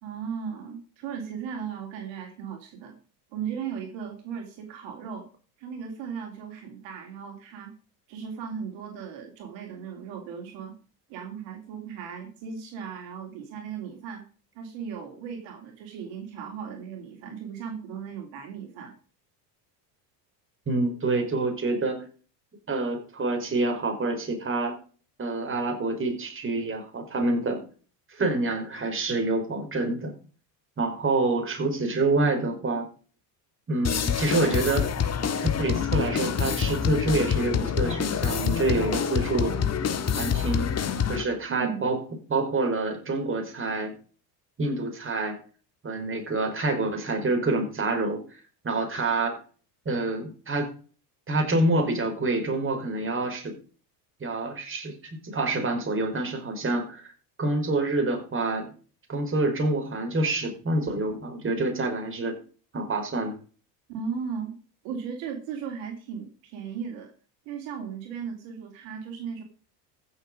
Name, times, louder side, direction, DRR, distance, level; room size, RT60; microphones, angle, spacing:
voice 1, 0.0-3.0 3.3-5.3 5.6-7.7 8.1-10.7 11.1-14.2 14.6-18.9 41.5-41.8 63.9-64.6 64.8-67.1 67.5-69.4, right 7 dB, 65° right, 2 dB, 3.4 m, -36 dB
voice 2, 20.7-22.0 22.7-24.7 25.2-27.6 28.1-30.1 30.8-32.9 33.7-34.9 35.2-39.5 40.1-40.7 41.1-42.0 42.3-43.9 44.6-45.4 45.8-48.4 48.6-49.4 49.9-50.7 51.3-53.5 54.2-57.1 57.4-58.7 59.1-62.4 62.7-63.3, right 2 dB, 25° right, 3 dB, 5.2 m, -27 dB
sound 1, 33.8-41.2, left 7 dB, 30° left, 1.7 m, -26 dB
15.0 x 7.1 x 5.2 m, 0.39 s
supercardioid pair, 95°, 48 cm